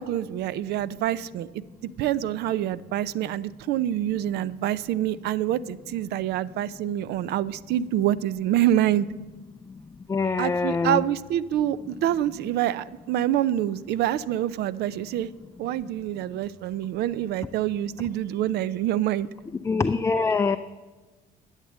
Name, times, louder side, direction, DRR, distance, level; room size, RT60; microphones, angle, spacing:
voice 1, 0.0-1.5 2.0-9.1 10.4-15.3 15.6-19.3, right 12 dB, 75° right, 19 dB, 0.5 m, -26 dB
voice 2, 10.1-11.0 19.6-20.6, left 4 dB, 15° left, 8 dB, 0.4 m, -24 dB
12.0 x 8.2 x 7.4 m, 1.2 s
cardioid pair, 110°, 17 cm